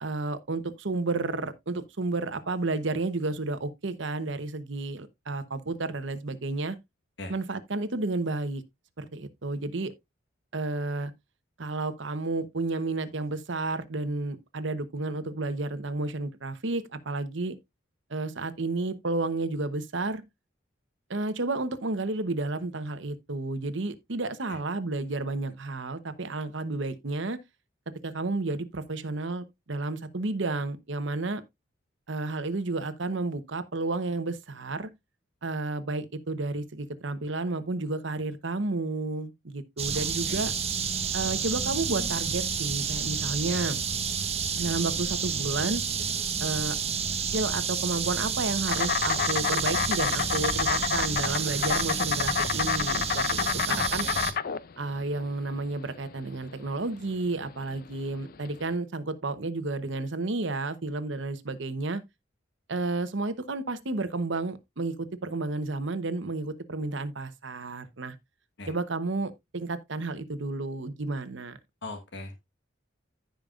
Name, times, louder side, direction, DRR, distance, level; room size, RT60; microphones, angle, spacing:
voice 1, 0.0-6.8 7.3-8.6 9.0-9.9 10.5-11.1 11.6-17.5 18.1-20.2 21.1-27.4 28.0-31.4 32.1-34.9 35.4-40.5 41.1-43.8 44.6-45.8 46.4-46.8 47.3-54.1 54.8-62.0 62.7-68.1 68.7-71.6, right 3 dB, 65° right, 1.0 m, -31 dB
sound 1, 39.8-54.3, right 6 dB, 30° right, 1.2 m, -30 dB
voice 2, 39.9-40.4 43.5-43.6 53.7-54.2 68.6-68.7 71.8-72.3, left 2 dB, 65° left, 1.4 m, -40 dB
Insect, 48.7-58.7, left 7 dB, 45° left, 0.5 m, -29 dB
15.0 x 5.2 x 2.5 m
head